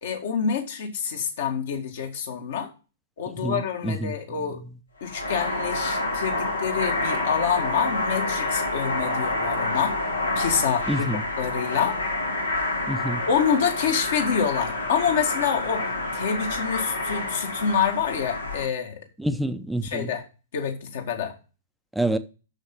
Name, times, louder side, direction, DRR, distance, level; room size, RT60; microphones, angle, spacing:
voice 1, 0.0-2.7 3.2-4.6 5.0-10.0 10.4-12.0 13.3-19.0 19.8-20.2 20.5-21.3, left 7 dB, 55° left, 1.9 m, -27 dB
voice 2, 3.4-4.1 10.9-11.2 12.9-13.2 19.2-20.1 21.9-22.2, right 1 dB, ahead, 0.7 m, -27 dB
sound 1, 5.0-18.6, left 2 dB, 85° left, 2.2 m, -28 dB
6.6 x 6.4 x 7.0 m
figure-of-eight pair, 110°, 0 cm